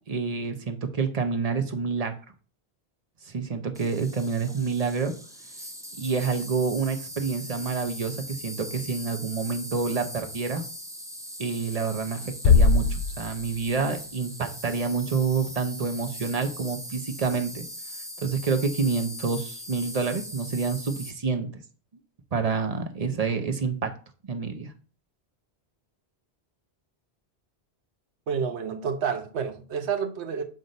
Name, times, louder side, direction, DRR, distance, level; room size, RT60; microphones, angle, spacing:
voice 1, 0.1-2.1 3.3-5.1 5.9-10.6 11.4-17.7 18.2-21.5 22.3-23.9 24.3-24.7, right 5 dB, 40° right, 0.8 m, -28 dB
Insect, 3.7-21.1, equal, 5° right, 0.5 m, -40 dB
Bass drum, 12.4-13.9, left 4 dB, 65° left, 0.7 m, -20 dB
voice 2, 28.3-30.4, right 6 dB, 85° right, 1.1 m, -29 dB
7.5 x 2.6 x 5.3 m
omnidirectional pair, 1.1 m